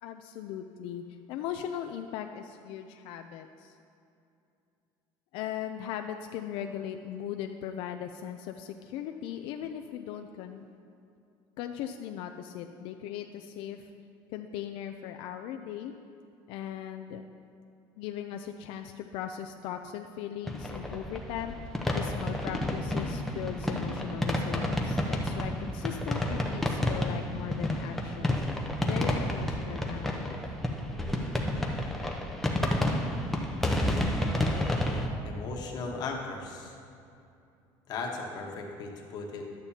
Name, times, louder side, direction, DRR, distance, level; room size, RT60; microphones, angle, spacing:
voice 1, 0.0-3.8 5.3-10.7 11.6-13.9 14.3-15.9 16.5-17.2 18.0-30.4, left 10 dB, 70° left, 5 dB, 0.4 m, -38 dB
sound 1, 20.5-35.1, left 1 dB, 5° left, 0.7 m, -30 dB
voice 2, 35.2-36.8 37.9-39.5, left 3 dB, 45° left, 1 dB, 1.2 m, -37 dB
12.0 x 8.9 x 2.8 m, 2.6 s
cardioid pair, 145°, 9 cm